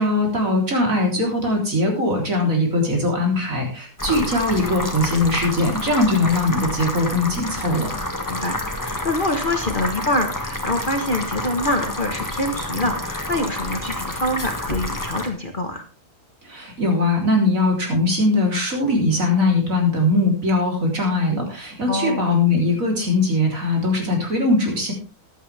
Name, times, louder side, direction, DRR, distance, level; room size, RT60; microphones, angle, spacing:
voice 1, 0.0-7.9 16.4-24.9, left 2 dB, 50° right, 1 dB, 4.0 m, -20 dB
sound 1, 4.0-15.3, left 1 dB, 10° left, 1.7 m, -29 dB
voice 2, 8.3-15.8 21.9-22.2, left 1 dB, 35° left, 5 dB, 1.3 m, -25 dB
14.5 x 11.0 x 3.4 m, 0.34 s
omnidirectional pair, 1.8 m